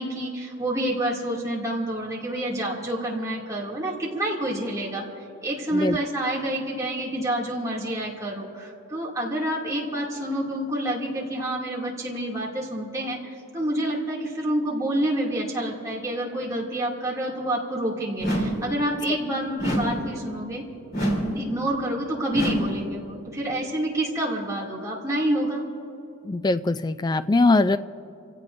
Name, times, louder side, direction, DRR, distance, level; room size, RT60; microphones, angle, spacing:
voice 1, 0.0-20.6 21.4-25.6, right 1 dB, 15° right, -4 dB, 2.5 m, -28 dB
sound 1, 18.2-18.7 19.6-20.1 20.9-21.4 22.3-22.8, right 1 dB, 45° left, 3.3 m, -26 dB
voice 2, 26.2-27.8, left 2 dB, 20° left, 11 dB, 0.3 m, -21 dB
29.0 x 16.5 x 2.6 m, 2.7 s
head